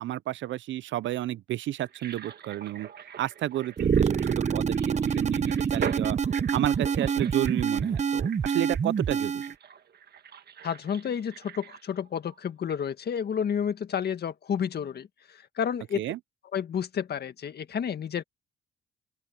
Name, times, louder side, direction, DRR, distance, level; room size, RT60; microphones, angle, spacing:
voice 1, 0.0-2.9 3.2-6.2 6.5-9.4 16.0-16.2, right 14 dB, 70° right, 0.6 m, -31 dB
sound 1, 1.8-12.4 12.7-12.8, right 8 dB, 55° right, 1.6 m, -42 dB
sound 2, 3.8-9.5, right 6 dB, 35° right, 0.8 m, -26 dB
voice 2, 10.6-16.0 16.5-18.2, left 8 dB, 55° left, 1.8 m, -31 dB
open air
cardioid pair, 90°, 20 cm